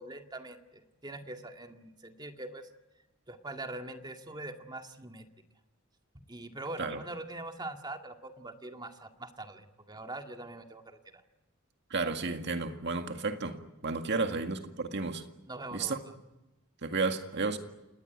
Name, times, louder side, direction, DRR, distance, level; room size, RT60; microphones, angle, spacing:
voice 1, 0.0-2.7 3.3-5.3 6.3-11.0 14.2-14.3 15.5-16.0, right 2 dB, 20° right, 2.0 m, -43 dB
voice 2, 11.9-15.2 15.7-16.0 16.8-17.6, right 3 dB, 55° right, 2.0 m, -32 dB
28.0 x 19.5 x 9.6 m
head